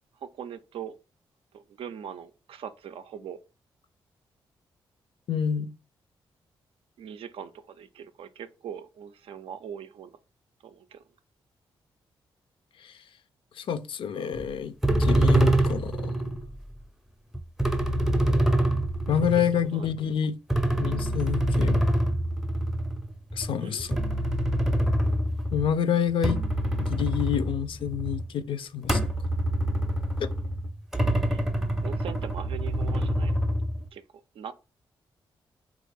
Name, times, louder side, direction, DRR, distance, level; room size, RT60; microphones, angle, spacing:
voice 1, 0.2-1.0 1.5-3.4 7.0-10.1 10.6-11.0 19.7-19.9 23.6-23.9 31.3-31.4 31.8-33.3 33.9-34.0 34.4-34.5, right 8 dB, 70° right, 0.4 m, -41 dB
voice 2, 5.3-5.7 12.8-13.0 13.6-14.7 15.0-16.4 19.1-20.4 20.8-21.9 23.3-24.0 25.5-26.4 26.8-29.1 30.2-30.3, left 8 dB, 65° left, 0.4 m, -28 dB
sound 1, 14.4-14.5 14.8-16.5 17.3-19.9 20.5-25.7 26.1-28.3 28.8-33.9, right 1 dB, 5° right, 0.5 m, -25 dB
3.2 x 2.4 x 3.2 m
supercardioid pair, 50°, 10 cm